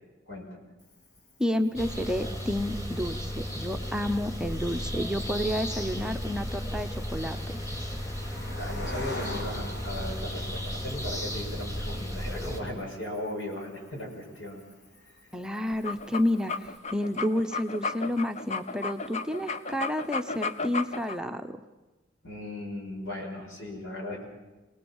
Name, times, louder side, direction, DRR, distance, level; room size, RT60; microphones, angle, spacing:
voice 1, 0.3-0.6 8.6-14.6 22.2-24.2, left 1 dB, 80° left, 1 dB, 6.0 m, -37 dB
Cricket, 0.8-16.8, left 1 dB, 60° left, 2.6 m, -47 dB
voice 2, 1.4-7.6 15.3-21.6, left 1 dB, 5° right, 5 dB, 0.7 m, -30 dB
sound 1, 1.7-12.6, equal, 15° left, 2.5 m, -34 dB
sound 2, 15.7-21.2, left 4 dB, 35° left, 0.7 m, -33 dB
25.0 x 18.5 x 7.2 m, 1.1 s
head